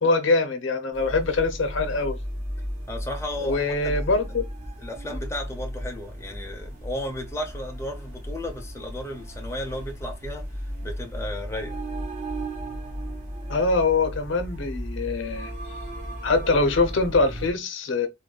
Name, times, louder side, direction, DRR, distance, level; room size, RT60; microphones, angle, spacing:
voice 1, 0.0-2.2 3.4-4.4 5.1-5.2 13.5-15.5 16.2-18.1, left 3 dB, 70° left, 0.8 m, -23 dB
sound 1, 0.9-17.5, equal, 35° right, 1.2 m, -35 dB
voice 2, 2.9-4.0 4.8-11.8, left 1 dB, 15° left, 0.7 m, -34 dB
3.8 x 2.6 x 2.2 m
head